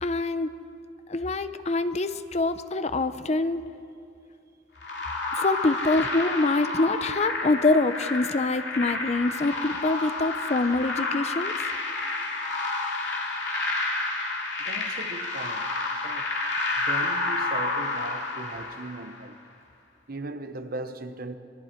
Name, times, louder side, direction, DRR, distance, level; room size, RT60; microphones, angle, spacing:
voice 1, 0.0-0.5 1.1-3.6 5.3-11.5, left 2 dB, 35° left, 0.6 m, -25 dB
sound 1, 4.8-19.2, left 3 dB, 60° left, 2.8 m, -30 dB
voice 2, 14.6-15.7 16.0-16.3 16.8-19.4 20.1-21.3, right 2 dB, 50° right, 1.0 m, -38 dB
27.0 x 21.5 x 4.5 m
head